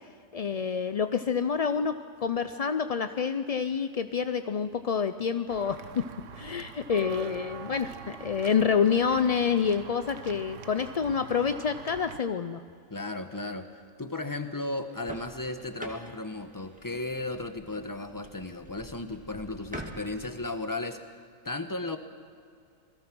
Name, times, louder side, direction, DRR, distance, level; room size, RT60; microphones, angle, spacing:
voice 1, 0.3-6.0 6.3-12.6, left 6 dB, 50° left, 10 dB, 0.4 m, -28 dB
Walk footsteps / Bell, 5.5-12.2, right 7 dB, 70° right, 1.2 m, -44 dB
voice 2, 12.9-13.7 14.0-21.0 21.4-22.0, left 2 dB, 15° left, 8 dB, 1.2 m, -35 dB
sound 1, 14.8-20.5, equal, 5° right, 2.3 m, -46 dB
28.0 x 20.5 x 6.2 m, 2.3 s
omnidirectional pair, 1.4 m